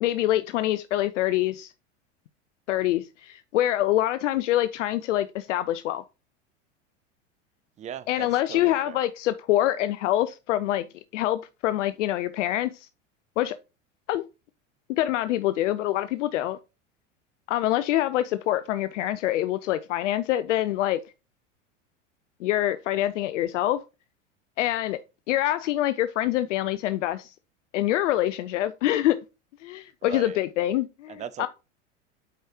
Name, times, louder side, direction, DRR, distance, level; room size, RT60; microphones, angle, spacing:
voice 1, 0.0-1.7 2.7-6.0 8.1-10.8 11.1-12.9 13.4-13.6 14.1-14.2 14.9-16.6 17.5-21.0 22.4-23.8 24.6-25.0 25.3-27.3 27.7-29.2 29.6-31.5, left 14 dB, 75° left, 0.5 m, -25 dB
voice 2, 7.8-9.0 30.0-30.4 31.1-31.5, right 10 dB, 20° right, 0.4 m, -38 dB
8.1 x 4.7 x 2.9 m
hypercardioid pair, 95°, 37 cm